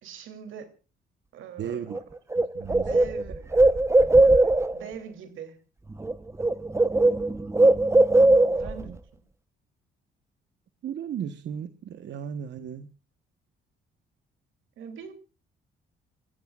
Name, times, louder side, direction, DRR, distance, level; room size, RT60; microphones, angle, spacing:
voice 1, 0.0-0.7 1.3-2.0 2.6-3.6 4.7-5.6 8.5-8.9 14.8-15.1, right 7 dB, 80° right, 7 dB, 3.0 m, -42 dB
voice 2, 1.6-2.0 2.3-3.2 8.8-9.0 10.8-12.9, right 8 dB, 65° right, 10 dB, 1.2 m, -36 dB
Bird, 1.9-2.0 2.3-4.8 5.9-6.1 6.4-8.8, right 2 dB, 15° right, 0.8 m, -19 dB
29.0 x 15.5 x 2.4 m, 0.33 s
cardioid pair, 90°, 20 cm